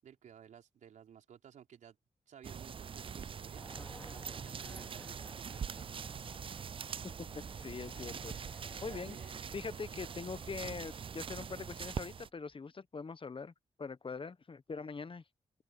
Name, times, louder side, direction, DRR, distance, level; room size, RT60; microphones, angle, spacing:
voice 1, 0.0-2.0 2.3-3.6 4.1-6.2 8.8-9.4, right 9 dB, 85° right, 4.5 m, -56 dB
sound 1, 2.4-12.3, right 7 dB, 45° right, 0.4 m, -43 dB
sound 2, 3.6-12.1 12.4-12.5, left 1 dB, 10° left, 2.7 m, -57 dB
voice 2, 7.3-8.3 8.8-9.2 9.5-13.5 13.8-15.2, left 4 dB, 45° left, 1.1 m, -43 dB
open air
cardioid pair, 50°, 13 cm